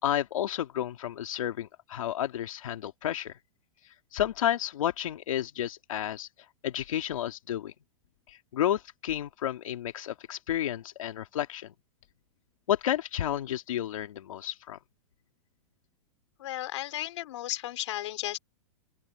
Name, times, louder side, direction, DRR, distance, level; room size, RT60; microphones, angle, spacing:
voice 1, 0.0-3.3 4.1-6.3 6.6-7.7 8.3-11.7 12.7-14.8, left 11 dB, 80° left, 2.7 m, -31 dB
voice 2, 16.4-18.4, left 14 dB, 60° left, 4.4 m, -34 dB
open air
supercardioid pair, 165°, 17 cm